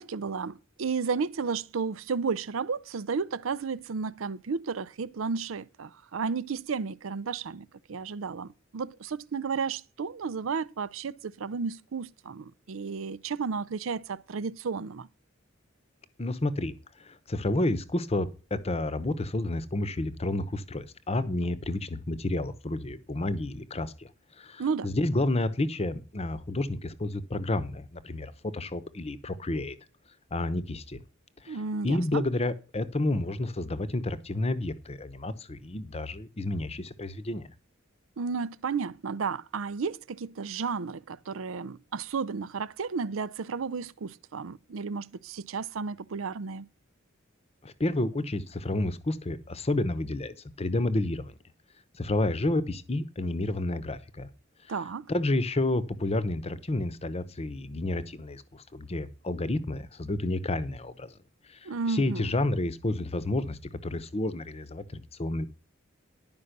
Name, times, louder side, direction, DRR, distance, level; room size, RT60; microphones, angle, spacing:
voice 1, 0.0-15.1 24.6-24.9 31.5-32.2 38.2-46.7 54.7-55.1 61.7-62.3, right 5 dB, 75° right, 0.5 m, -33 dB
voice 2, 16.2-16.7 17.0-24.1 24.4-29.8 30.3-31.0 31.4-37.5 47.6-51.3 52.0-54.3 55.1-61.1 61.9-65.5, left 2 dB, 30° left, 0.9 m, -30 dB
11.5 x 5.3 x 6.6 m
head